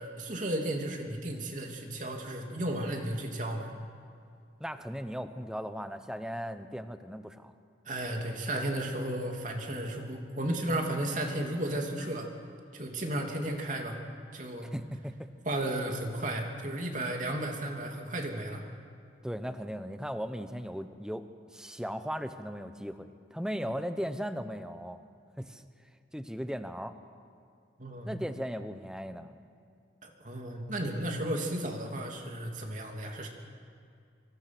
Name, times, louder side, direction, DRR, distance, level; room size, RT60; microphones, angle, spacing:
voice 1, 0.0-3.7 7.8-12.3 12.7-14.0 14.3-14.7 15.4-18.6 27.8-28.1 30.0-33.3, right 1 dB, 45° right, 2 dB, 2.9 m, -34 dB
voice 2, 4.6-7.5 14.6-15.3 19.2-21.3 21.5-25.0 25.4-25.6 26.1-26.9 28.0-29.4, equal, 5° right, 9 dB, 1.0 m, -37 dB
25.5 x 25.5 x 6.2 m, 2.4 s
head